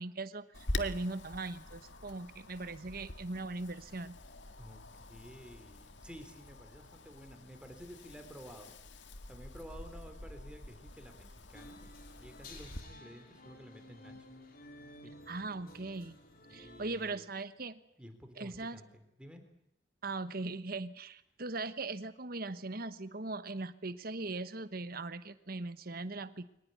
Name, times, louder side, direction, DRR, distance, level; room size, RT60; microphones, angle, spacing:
voice 1, 0.0-4.2 15.3-16.2 16.5-17.8 18.4-18.8 20.0-26.5, right 3 dB, 55° right, 12 dB, 1.2 m, -39 dB
Wind, 0.5-12.8, left 1 dB, 85° left, 1.9 m, -46 dB
voice 2, 4.6-11.9 12.2-14.3 15.0-15.2 16.5-17.2 18.0-19.4, equal, 5° right, 5 dB, 3.4 m, -52 dB
sound 1, 11.5-17.2, left 2 dB, 50° left, 4.0 m, -54 dB
23.0 x 19.5 x 9.7 m, 0.79 s
head